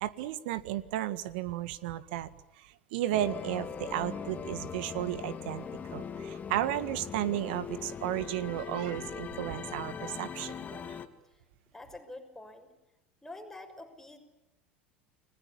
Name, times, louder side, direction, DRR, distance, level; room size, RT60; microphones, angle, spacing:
voice 1, 0.0-2.3 2.6-11.0, right 13 dB, 65° right, 15 dB, 1.7 m, -34 dB
sound 1, 3.1-11.1, left 6 dB, 25° left, 2.6 m, -40 dB
voice 2, 11.7-12.7 13.2-14.2, left 2 dB, 5° left, 5 dB, 6.0 m, -46 dB
30.0 x 21.0 x 8.6 m, 0.91 s
hypercardioid pair, 80°, 6 cm